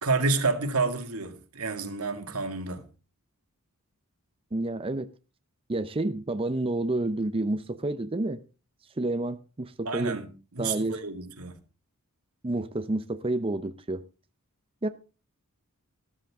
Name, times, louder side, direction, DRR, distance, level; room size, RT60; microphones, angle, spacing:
voice 1, 0.0-2.8 9.9-10.3 10.5-11.6, right 3 dB, 80° right, 2.1 m, -29 dB
voice 2, 4.5-5.1 5.7-8.4 9.0-10.2 10.6-11.0 12.4-14.0 14.8-14.9, right 2 dB, 25° right, 0.6 m, -29 dB
13.5 x 13.0 x 3.6 m
head